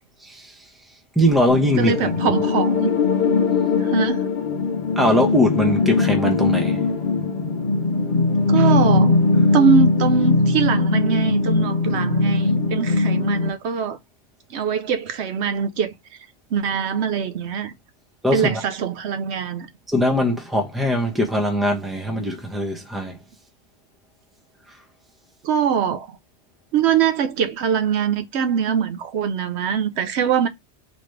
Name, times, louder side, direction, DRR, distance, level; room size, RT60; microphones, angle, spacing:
voice 1, 1.2-1.9 5.0-6.8 18.2-18.5 19.9-23.2, equal, ahead, 0.8 m, -20 dB
sound 1, 1.5-13.5, left 3 dB, 50° left, 0.9 m, -20 dB
voice 2, 1.8-2.9 3.8-4.3 8.5-9.2 9.5-14.0 14.5-15.9 16.5-17.7 18.3-19.7 25.4-26.2 26.7-30.5, right 7 dB, 80° right, 0.9 m, -22 dB
4.0 x 3.1 x 3.2 m
omnidirectional pair, 1.1 m